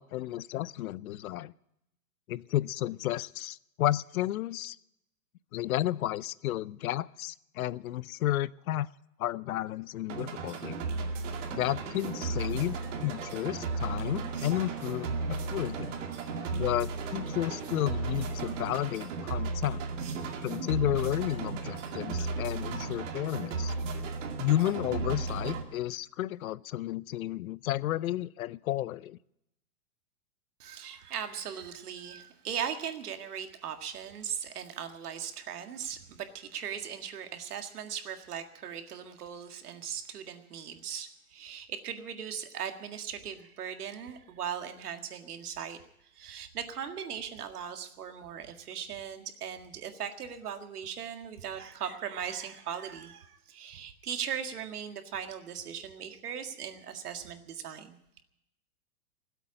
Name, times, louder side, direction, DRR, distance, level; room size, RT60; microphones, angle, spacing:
voice 1, 0.0-1.5 2.3-4.8 5.5-8.9 9.2-10.8 11.5-16.0 16.5-19.8 20.4-23.7 24.4-29.2, left 14 dB, 70° left, 20 dB, 0.6 m, -32 dB
sound 1, 10.1-25.6, right 4 dB, 55° right, 2.3 m, -35 dB
sound 2, 11.6-18.8, right 2 dB, 10° right, 2.9 m, -51 dB
voice 2, 30.6-45.8 46.1-58.0, right 8 dB, 85° right, 6 dB, 2.0 m, -39 dB
17.5 x 8.2 x 9.9 m, 0.83 s
hypercardioid pair, 165°, 44 cm